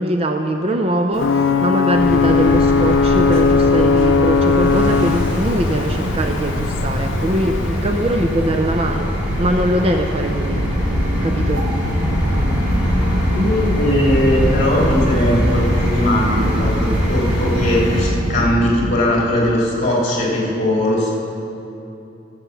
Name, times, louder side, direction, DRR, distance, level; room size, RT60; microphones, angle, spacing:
voice 1, 0.0-10.6 11.2-11.7, right 1 dB, 30° right, 4 dB, 0.5 m, -21 dB
Ocean / Boat Water vehicle / Alarm, 1.1-8.7, left 5 dB, 75° left, 0.5 m, -19 dB
sound 1, 1.9-18.0, equal, 5° right, 3.3 m, -23 dB
sound 2, 10.0-19.1, equal, 70° right, 1.8 m, -23 dB
voice 2, 13.2-21.2, left 1 dB, 35° left, -4 dB, 2.9 m, -19 dB
15.0 x 7.0 x 7.1 m, 2.8 s
head